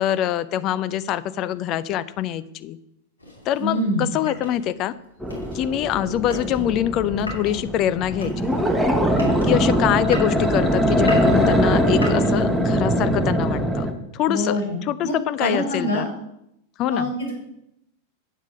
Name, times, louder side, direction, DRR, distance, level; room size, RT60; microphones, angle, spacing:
voice 1, 0.0-2.8 3.5-4.9 5.5-8.5 9.4-16.1 16.8-17.1, left 11 dB, 35° left, 15 dB, 0.4 m, -24 dB
sound 1, 3.2-12.9, left 1 dB, 80° left, 2.7 m, -38 dB
voice 2, 3.6-4.1 14.3-16.1 16.9-17.3, equal, 60° left, -1 dB, 3.8 m, -25 dB
sound 2, 5.2-13.9, equal, 5° right, 1.1 m, -21 dB
8.3 x 7.2 x 5.0 m, 0.81 s
figure-of-eight pair, 90°, 0 cm